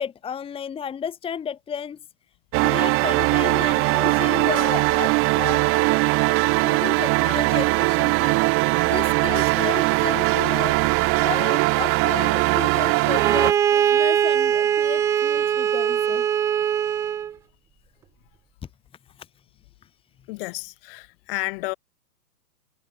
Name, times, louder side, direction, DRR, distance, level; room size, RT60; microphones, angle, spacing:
voice 1, 0.0-2.0 2.6-5.7 6.6-16.3 19.2-19.3, left 7 dB, 10° left, 2.3 m, -33 dB
sound 1, 2.5-13.5, right 26 dB, 25° right, 2.5 m, -20 dB
Bowed string instrument, 13.1-17.3, right 9 dB, 5° right, 0.6 m, -21 dB
voice 2, 20.3-21.7, left 25 dB, 35° left, 3.9 m, -31 dB
hypercardioid pair, 145°, 47 cm